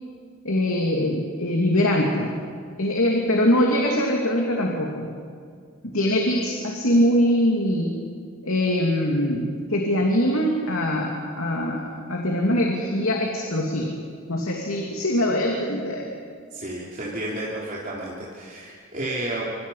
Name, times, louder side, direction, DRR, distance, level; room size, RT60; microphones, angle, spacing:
voice 1, 0.4-2.4 2.8-5.1 5.8-8.0 8.4-14.0 14.3-16.1, left 1 dB, 85° left, 0 dB, 2.8 m, -23 dB
voice 2, 16.5-19.5, right 1 dB, 40° right, -5 dB, 3.4 m, -31 dB
26.0 x 25.5 x 5.7 m, 2.1 s
head